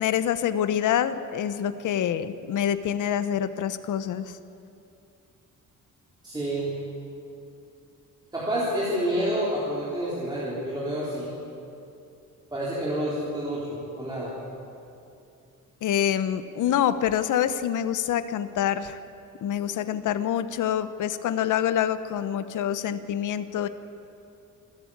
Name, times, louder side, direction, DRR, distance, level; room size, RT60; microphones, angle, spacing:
voice 1, 0.0-4.4 15.8-19.0 19.4-23.7, left 10 dB, 65° left, 12 dB, 0.9 m, -26 dB
voice 2, 6.2-6.8 8.3-11.3 12.5-14.3, equal, 15° right, -8 dB, 4.0 m, -28 dB
27.5 x 11.0 x 8.7 m, 2.6 s
cardioid pair, 170°, 33 cm